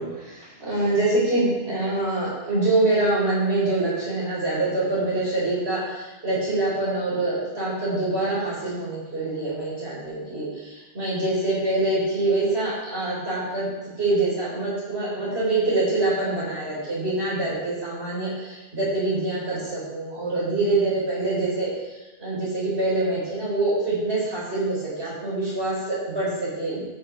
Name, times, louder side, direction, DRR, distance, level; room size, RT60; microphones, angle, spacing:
voice 1, 0.0-13.6 14.0-21.7 22.2-26.8, right 2 dB, 60° right, -7 dB, 4.3 m, -25 dB
12.5 x 5.8 x 4.9 m, 1.1 s
omnidirectional pair, 1.2 m